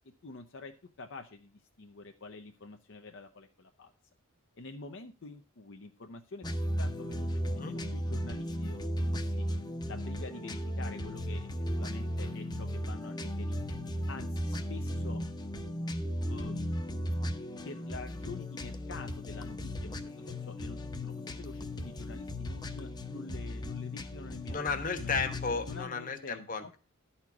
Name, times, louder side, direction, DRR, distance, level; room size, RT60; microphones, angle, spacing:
voice 1, 0.2-3.9 4.5-9.4 9.8-13.8 14.1-15.2 16.3-16.6 17.6-24.6 25.0-25.2 25.7-26.7, left 3 dB, 60° left, 5 dB, 0.7 m, -47 dB
sound 1, 6.4-25.8, equal, 20° left, 0.8 m, -36 dB
voice 2, 24.5-26.8, left 4 dB, 40° left, 8 dB, 1.2 m, -34 dB
12.0 x 4.4 x 6.0 m, 0.35 s
head